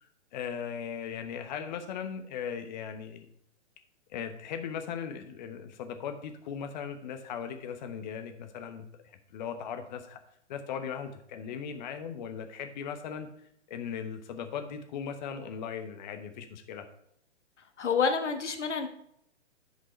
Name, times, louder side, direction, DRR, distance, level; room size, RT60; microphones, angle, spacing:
voice 1, 0.3-3.3 4.1-10.2 10.5-13.3 13.7-16.9, left 7 dB, 40° left, 8 dB, 1.0 m, -38 dB
voice 2, 17.8-18.9, left 5 dB, 70° left, 6 dB, 1.2 m, -28 dB
10.0 x 5.2 x 4.4 m, 0.72 s
figure-of-eight pair, 120°, 37 cm